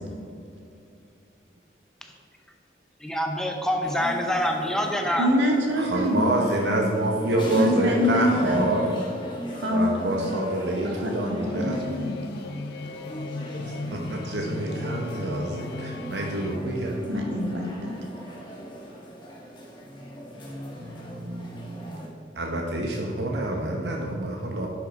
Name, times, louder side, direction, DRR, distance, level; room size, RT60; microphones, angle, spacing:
voice 1, 3.0-5.3, equal, 5° left, 2 dB, 0.7 m, -26 dB
sound 1, 3.8-22.1, equal, 25° left, 1.6 m, -37 dB
voice 2, 5.2-6.9 7.5-8.6 9.5-10.2 10.8-11.4 11.7-12.1 17.1-17.9, left 1 dB, 90° right, 0 dB, 1.8 m, -25 dB
voice 3, 5.8-8.9 9.7-11.8 13.9-17.0 22.3-24.7, right 2 dB, 70° right, 0 dB, 1.0 m, -27 dB
sound 2, 11.4-16.6, left 3 dB, 60° left, 0.3 m, -37 dB
10.5 x 6.2 x 5.1 m, 2.5 s
head